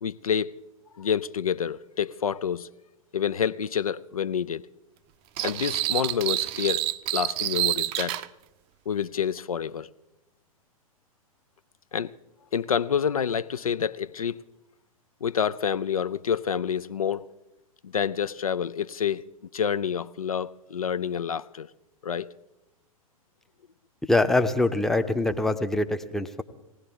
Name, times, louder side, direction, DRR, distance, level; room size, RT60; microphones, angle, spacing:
voice 1, 0.0-0.5 1.0-2.7 3.1-4.7 5.4-8.2 8.9-9.9 11.9-12.1 12.5-14.4 15.2-17.2 17.8-19.3 19.5-21.7 22.0-22.3, left 7 dB, 75° left, 0.4 m, -28 dB
sound 1, 5.4-8.3, right 15 dB, 35° right, 0.5 m, -28 dB
voice 2, 24.1-26.4, left 2 dB, ahead, 0.6 m, -24 dB
19.5 x 17.5 x 3.6 m
figure-of-eight pair, 95°, 18 cm